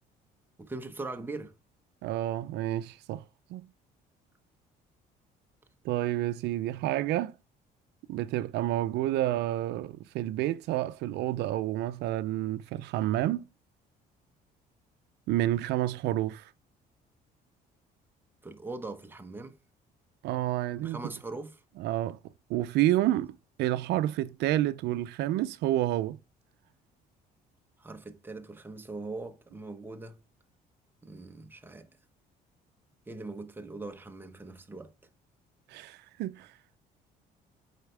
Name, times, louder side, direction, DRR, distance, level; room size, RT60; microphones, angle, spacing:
voice 1, 0.6-1.5 18.4-19.6 20.8-21.6 27.8-30.2 31.0-31.9 33.1-34.9, right 3 dB, 10° right, 1.0 m, -41 dB
voice 2, 2.0-3.2 3.5-3.7 5.8-7.3 8.1-13.4 15.3-16.5 20.2-21.0 21.8-22.2 22.5-26.2 35.7-36.5, right 14 dB, 80° right, 0.5 m, -29 dB
8.2 x 4.5 x 3.3 m
cardioid pair, 110°, 17 cm